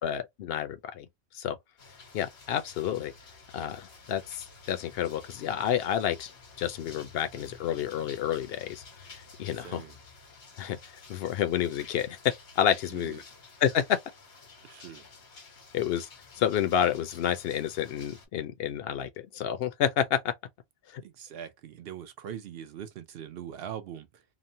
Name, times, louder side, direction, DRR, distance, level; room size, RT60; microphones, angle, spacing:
voice 1, 0.0-1.1 1.3-1.6 2.1-3.1 3.5-6.3 6.6-8.8 9.4-9.8 10.6-10.8 11.1-12.2 12.6-13.2 13.6-14.0 15.7-16.1 16.4-20.3 20.9-21.0, left 9 dB, 70° left, 0.8 m, -29 dB
sound 1, 1.8-18.3, left 4 dB, 85° left, 1.3 m, -51 dB
voice 2, 9.5-10.0 12.9-13.2 14.6-15.0 21.0-24.2, right 9 dB, 70° right, 0.8 m, -42 dB
3.0 x 2.1 x 2.6 m
omnidirectional pair, 1.1 m